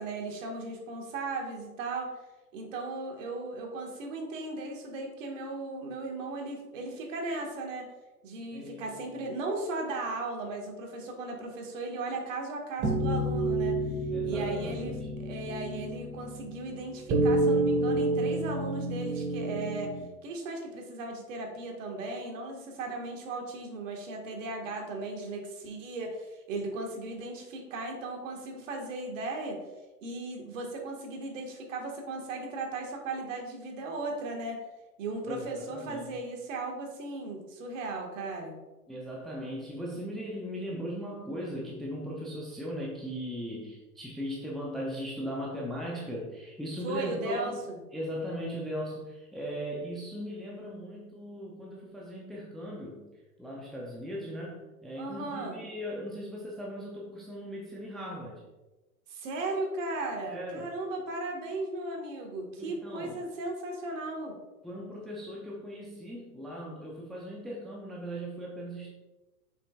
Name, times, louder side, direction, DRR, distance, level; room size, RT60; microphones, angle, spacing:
voice 1, 0.0-2.2 2.5-7.9 8.2-13.9 14.2-20.0 20.2-29.6 30.0-34.6 35.0-38.6 46.8-47.8 55.0-55.6 59.1-64.4, right 2 dB, 55° right, 1 dB, 1.8 m, -36 dB
voice 2, 8.5-9.2 14.1-15.1 35.3-36.1 38.9-53.1 53.4-58.4 60.3-60.7 62.6-63.2 64.6-68.9, equal, ahead, -3 dB, 0.5 m, -38 dB
sound 1, 12.8-20.0, right 2 dB, 25° right, 1.6 m, -29 dB
7.2 x 5.8 x 2.4 m, 1.1 s
hypercardioid pair, 115°, 46 cm